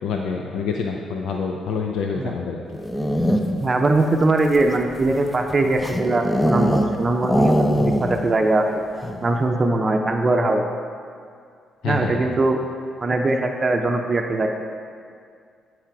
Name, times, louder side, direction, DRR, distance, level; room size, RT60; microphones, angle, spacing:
voice 1, 0.0-2.6 11.8-12.2, left 5 dB, 80° left, 1 dB, 0.5 m, -27 dB
sound 1, 2.7-3.7 4.4-7.0 7.2-8.3 8.6-8.7 9.0-9.4, equal, 10° left, 0.7 m, -22 dB
voice 2, 3.6-8.8 9.2-10.6 11.8-12.6 13.0-14.5, right 2 dB, 30° right, 3 dB, 0.7 m, -21 dB
11.0 x 5.0 x 4.7 m, 2.2 s
cardioid pair, 90°, 0 cm